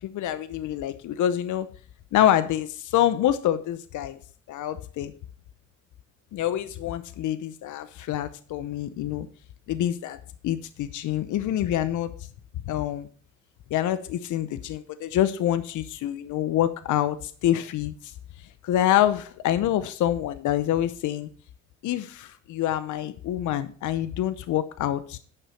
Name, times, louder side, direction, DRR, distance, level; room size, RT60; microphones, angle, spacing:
voice 1, 0.0-1.7 2.1-4.2 4.5-5.1 6.3-9.3 9.7-12.2 12.7-13.1 13.7-18.1 18.6-21.3 21.8-25.2, left 12 dB, 75° left, 12 dB, 0.7 m, -26 dB
10.0 x 5.7 x 6.2 m, 0.41 s
cardioid pair, 90°, 30 cm